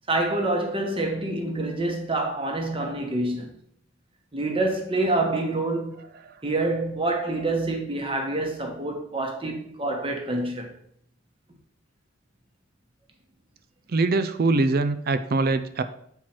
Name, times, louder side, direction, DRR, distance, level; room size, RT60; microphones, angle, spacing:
voice 1, 0.1-3.5 4.3-6.0 6.4-10.7, right 2 dB, 30° right, 1.2 m, -27 dB
voice 2, 13.9-15.8, right 3 dB, 50° right, 0.4 m, -23 dB
7.5 x 4.6 x 4.4 m
head